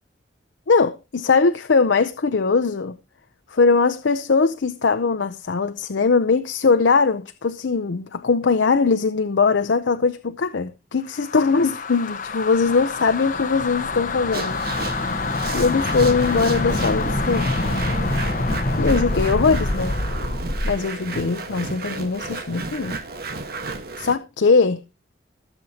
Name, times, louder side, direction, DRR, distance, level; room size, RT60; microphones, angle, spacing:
voice 1, 0.7-3.0 3.5-14.6 15.5-17.5 18.8-20.0 20.6-22.9 24.0-24.8, left 4 dB, 75° left, 0.6 m, -20 dB
sound 1, 11.1-20.9, left 2 dB, 45° left, 1.1 m, -25 dB
sound 2, 14.3-24.2, right 3 dB, 55° right, 1.3 m, -33 dB
20.5 x 7.2 x 2.8 m
head